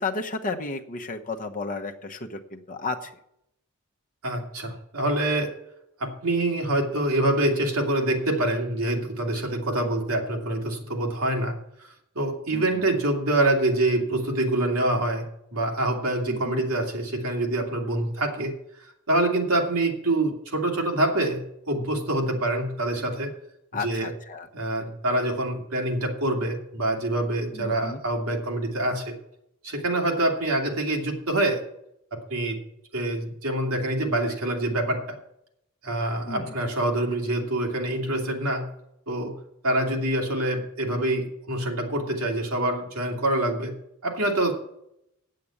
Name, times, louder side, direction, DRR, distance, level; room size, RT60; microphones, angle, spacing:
voice 1, 0.0-3.1 12.5-12.9 16.3-16.6 23.7-24.5 27.5-28.0 36.3-36.6, left 3 dB, 40° left, 4 dB, 1.1 m, -33 dB
voice 2, 4.2-5.5 6.0-11.5 11.8-15.3 15.5-18.5 18.8-23.3 23.8-24.1 24.5-29.1 29.6-31.6 32.1-32.6 32.9-35.2 35.8-38.7 39.1-39.3 39.6-43.7 44.0-44.5, right 1 dB, 70° right, 1 dB, 2.4 m, -26 dB
8.5 x 7.7 x 8.5 m, 0.79 s
head